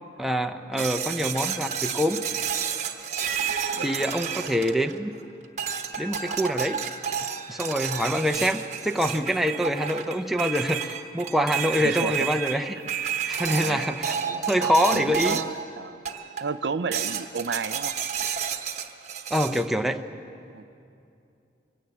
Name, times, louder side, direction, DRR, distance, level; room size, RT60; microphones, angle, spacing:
voice 1, 0.2-2.2 3.8-5.1 6.0-6.8 7.5-12.8 13.3-14.1 14.5-15.4 19.3-20.0, equal, ahead, 5 dB, 0.6 m, -25 dB
sound 1, 0.8-5.1 5.6-15.6 16.0-16.6 16.9-19.7, right 8 dB, 40° right, 1.1 m, -31 dB
voice 2, 3.3-4.1 4.4-4.7 11.7-12.3 13.4-14.4 14.9-16.0 16.4-17.9 20.5-20.6, right 4 dB, 60° right, 13 dB, 0.5 m, -33 dB
23.5 x 17.5 x 8.5 m, 2.6 s
head